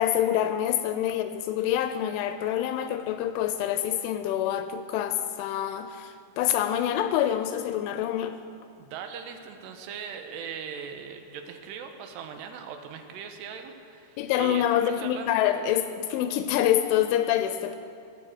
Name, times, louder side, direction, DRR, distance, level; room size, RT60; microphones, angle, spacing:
voice 1, 0.0-8.4 14.2-17.8, left 11 dB, 85° left, 9 dB, 2.9 m, -26 dB
voice 2, 8.8-15.4, right 7 dB, 80° right, 5 dB, 2.6 m, -40 dB
19.0 x 7.1 x 7.7 m, 2.5 s
omnidirectional pair, 5.8 m